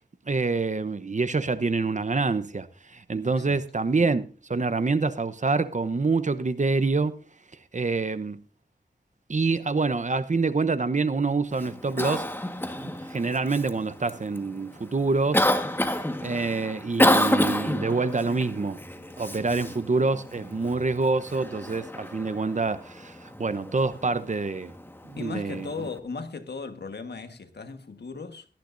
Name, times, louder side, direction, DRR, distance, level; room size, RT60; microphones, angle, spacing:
voice 1, 0.3-7.2 7.7-8.4 9.3-12.3 12.8-15.5 15.9-18.8 19.2-24.7 25.0-25.7, right 3 dB, 45° right, 0.9 m, -26 dB
voice 2, 3.2-3.6 25.2-28.5, left 4 dB, 90° left, 1.4 m, -37 dB
Cough, 11.5-26.0, left 1 dB, 15° left, 1.5 m, -30 dB
18.0 x 13.5 x 2.6 m
wide cardioid pair, 75°, 17 cm